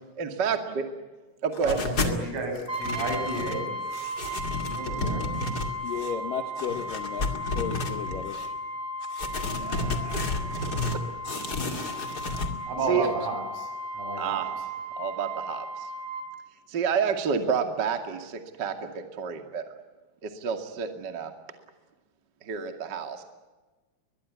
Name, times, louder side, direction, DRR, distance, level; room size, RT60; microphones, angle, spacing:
voice 1, 0.2-0.9 1.4-2.0 9.5-10.5 11.6-12.0 12.9-13.1 14.2-14.5 14.9-15.9 16.7-19.6 20.2-21.3 22.4-23.2, right 6 dB, 45° right, 7 dB, 1.4 m, -30 dB
sound 1, 1.5-2.2 2.6-3.6 3.9-6.1 6.6-8.5 9.0-11.0 11.2-12.5, left 2 dB, 45° left, 1.3 m, -31 dB
voice 2, 2.0-3.7 4.7-5.3 11.5-11.8 12.7-14.5, right 3 dB, 75° right, 4 dB, 8.9 m, -32 dB
Brass instrument, 2.7-16.3, equal, 5° right, 4.9 m, -35 dB
voice 3, 5.8-8.5, left 8 dB, 70° left, 7 dB, 2.1 m, -34 dB
23.5 x 21.5 x 9.5 m, 1.2 s
omnidirectional pair, 5.9 m